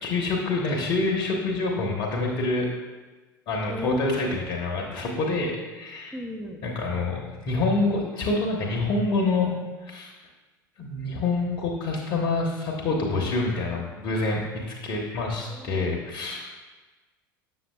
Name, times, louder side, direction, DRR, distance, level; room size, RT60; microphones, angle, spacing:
voice 1, 0.0-2.7 3.5-6.2 6.6-9.5 9.8-10.1 10.8-16.5, left 3 dB, 45° left, -1 dB, 0.9 m, -27 dB
voice 2, 3.7-4.3 6.1-6.6 15.5-15.9, equal, ahead, 3 dB, 0.7 m, -36 dB
7.4 x 6.4 x 2.2 m, 1.3 s
figure-of-eight pair, 75°, 11 cm